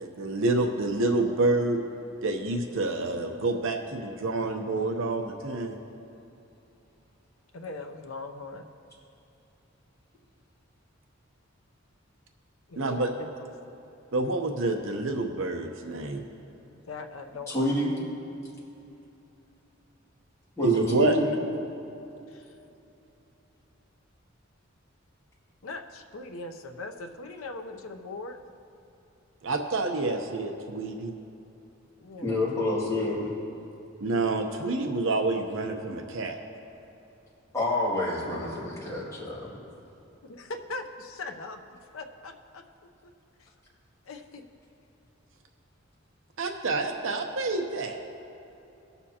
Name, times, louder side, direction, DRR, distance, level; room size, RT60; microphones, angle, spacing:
voice 1, 0.0-1.8 2.2-5.7 12.8-13.1 14.1-16.2 20.6-21.2 29.4-31.1 34.0-36.4 46.4-48.0, right 2 dB, 70° right, 4 dB, 0.8 m, -28 dB
voice 2, 7.5-8.6 12.7-13.5 16.7-17.8 22.3-22.5 25.6-28.4 32.0-32.4 40.2-43.1 43.4-43.5 44.0-44.4, left 3 dB, 85° left, 5 dB, 0.8 m, -40 dB
voice 3, 17.5-17.9 20.6-21.3 32.2-33.3 37.5-39.5, left 1 dB, 15° left, -7 dB, 2.3 m, -28 dB
19.5 x 6.9 x 2.9 m, 2.9 s
head